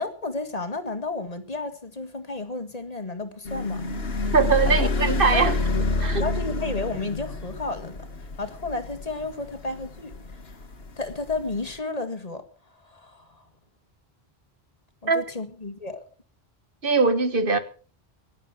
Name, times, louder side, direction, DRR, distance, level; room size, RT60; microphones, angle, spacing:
voice 1, 0.0-3.8 4.8-4.9 5.3-5.8 6.2-10.2 10.4-13.4 15.0-16.0, left 3 dB, 40° left, 1.8 m, -32 dB
sound 1, 3.4-11.7, left 3 dB, 70° left, 1.8 m, -29 dB
voice 2, 4.3-5.5 6.0-6.3 15.1-15.2 16.8-17.6, right 4 dB, 60° right, 1.7 m, -21 dB
17.0 x 10.5 x 6.0 m
omnidirectional pair, 1.1 m